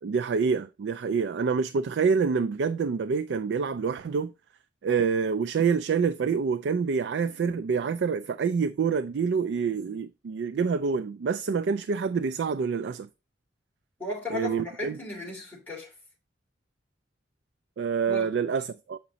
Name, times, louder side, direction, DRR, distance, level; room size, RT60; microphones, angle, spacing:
voice 1, 0.0-4.3 4.8-13.1 14.3-15.0 17.8-19.0, right 5 dB, 70° right, 0.3 m, -27 dB
voice 2, 14.0-15.9 18.1-18.3, left 2 dB, 10° left, 2.9 m, -36 dB
7.2 x 5.0 x 2.8 m
head